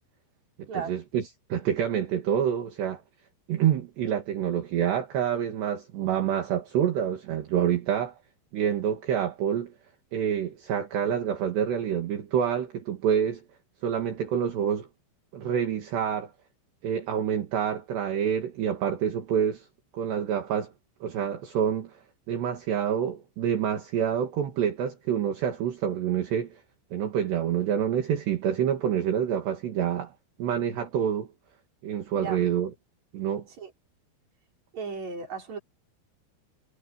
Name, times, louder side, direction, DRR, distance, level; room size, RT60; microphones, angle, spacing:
voice 1, 0.6-3.0 3.5-8.2 8.5-9.7 10.1-13.4 13.8-14.9 15.3-16.3 16.8-19.7 19.9-20.7 21.0-22.0 22.3-26.6 26.9-30.1 30.4-31.3 31.8-32.7 33.1-33.5, right 9 dB, 60° right, 4.3 m, -27 dB
voice 2, 34.7-35.6, right 5 dB, 35° right, 6.0 m, -35 dB
omnidirectional pair, 5.8 m